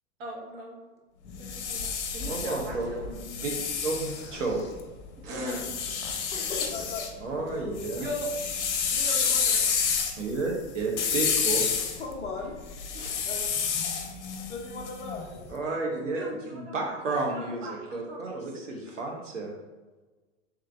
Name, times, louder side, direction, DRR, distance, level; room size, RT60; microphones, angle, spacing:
voice 1, 0.2-0.8 1.3-3.0 5.2-5.6 8.0-8.3 8.9-9.7 12.9-13.4 16.1-16.9 17.3-18.4, equal, 50° right, -2 dB, 1.3 m, -39 dB
sound 1, 1.3-4.8 5.5-7.1 7.5-15.4, left 6 dB, 65° left, 0.8 m, -30 dB
voice 2, 2.2-3.5 3.8-4.6 7.2-8.1 10.2-11.6 15.5-19.5, right 3 dB, 80° right, 0 dB, 1.0 m, -32 dB
voice 3, 4.1-4.7 6.3-7.1 7.4-8.1 11.6-12.5 13.2-13.5 14.5-16.2 18.7-18.8, left 4 dB, 15° left, -1 dB, 0.8 m, -39 dB
3.7 x 3.0 x 3.3 m, 1.2 s
figure-of-eight pair, 100°, 38 cm